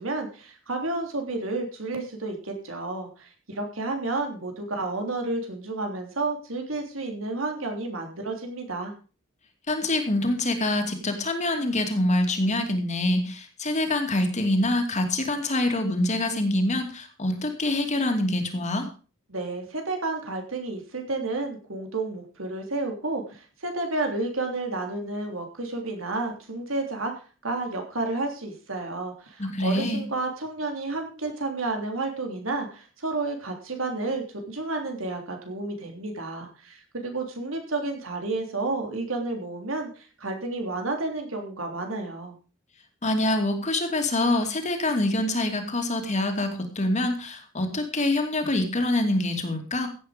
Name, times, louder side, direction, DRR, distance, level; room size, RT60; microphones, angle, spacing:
voice 1, 0.0-8.9 19.3-27.1 27.4-42.4, right 2 dB, 90° right, 3 dB, 3.5 m, -31 dB
voice 2, 9.7-18.9 29.4-30.0 43.0-49.9, left 1 dB, 35° left, 5 dB, 2.6 m, -25 dB
15.5 x 8.6 x 5.2 m, 0.37 s
head